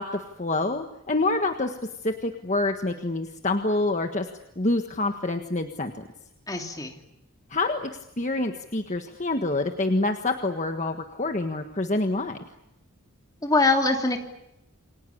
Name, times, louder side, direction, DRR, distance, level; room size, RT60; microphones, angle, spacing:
voice 1, 0.0-1.8 2.0-4.3 4.6-5.9 7.5-12.4, left 2 dB, 35° left, 5 dB, 1.5 m, -27 dB
voice 2, 6.5-7.0 13.4-14.2, left 3 dB, 15° left, 2 dB, 3.0 m, -23 dB
29.0 x 23.5 x 8.6 m, 0.89 s
head